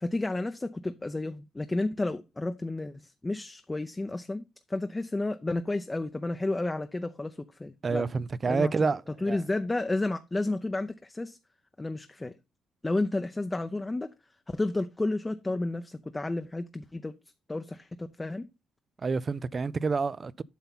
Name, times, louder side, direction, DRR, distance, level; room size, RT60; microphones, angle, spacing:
voice 1, 0.0-2.9 3.2-4.4 4.7-8.1 8.5-8.9 9.2-11.4 11.8-12.3 12.8-14.1 14.5-17.1 17.5-18.5, left 2 dB, 15° left, 0.6 m, -31 dB
voice 2, 7.8-9.4 19.0-20.4, right 4 dB, 35° right, 0.4 m, -28 dB
8.1 x 5.5 x 4.0 m
cardioid pair, 90°, 0 cm